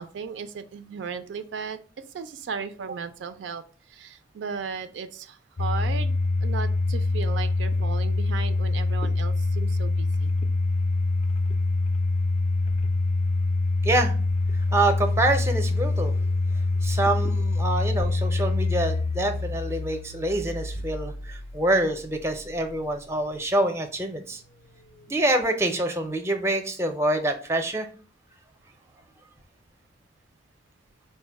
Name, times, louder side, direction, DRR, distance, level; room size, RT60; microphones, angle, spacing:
voice 1, 0.0-3.6 3.9-10.3, right 6 dB, 75° right, 10 dB, 0.4 m, -36 dB
Domestic sounds home sounds, 5.6-22.5, left 2 dB, 35° left, 0.4 m, -25 dB
voice 2, 13.8-14.1 14.7-16.2 16.8-24.4 25.1-27.9, right 1 dB, 15° right, 6 dB, 0.5 m, -26 dB
4.5 x 2.1 x 4.5 m, 0.40 s
head